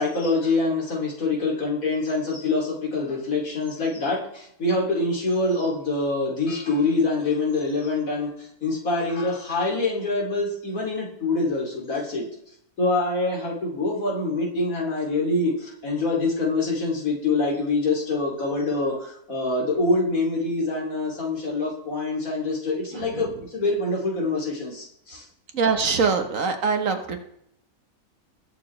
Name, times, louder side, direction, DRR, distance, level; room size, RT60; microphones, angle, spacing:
voice 1, 0.0-12.3 12.8-25.2, left 3 dB, 65° left, -1 dB, 3.1 m, -25 dB
voice 2, 22.9-23.3 25.5-27.3, right 5 dB, 65° right, 6 dB, 1.6 m, -24 dB
20.5 x 7.1 x 3.2 m, 0.73 s
omnidirectional pair, 1.5 m